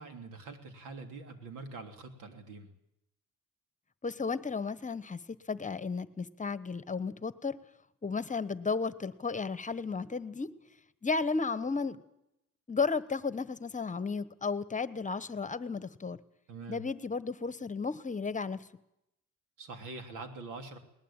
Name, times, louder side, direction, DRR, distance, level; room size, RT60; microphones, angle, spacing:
voice 1, 0.0-2.7 16.5-16.8 19.6-20.8, right 3 dB, 90° right, 6 dB, 3.3 m, -44 dB
voice 2, 4.0-7.6 8.0-10.5 11.0-12.0 12.7-16.2 16.7-18.7, left 4 dB, 25° left, 15 dB, 1.2 m, -34 dB
20.0 x 20.0 x 8.9 m, 0.83 s
cardioid pair, 90°, 30 cm